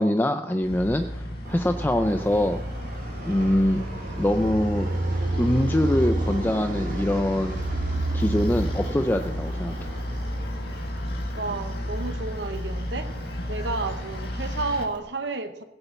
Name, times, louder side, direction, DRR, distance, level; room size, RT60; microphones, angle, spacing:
voice 1, 0.0-2.6 3.2-3.8 4.2-4.9 5.4-7.6 8.1-9.7, left 1 dB, 10° left, 7 dB, 0.4 m, -24 dB
sound 1, 0.6-14.9, equal, 55° left, 2.1 m, -33 dB
Fixed-wing aircraft airplane, 1.5-15.0, right 2 dB, 50° right, 1.6 m, -33 dB
voice 2, 11.3-13.1 13.5-15.6, right 3 dB, 65° right, 7 dB, 0.9 m, -31 dB
16.5 x 6.9 x 7.0 m, 0.94 s
head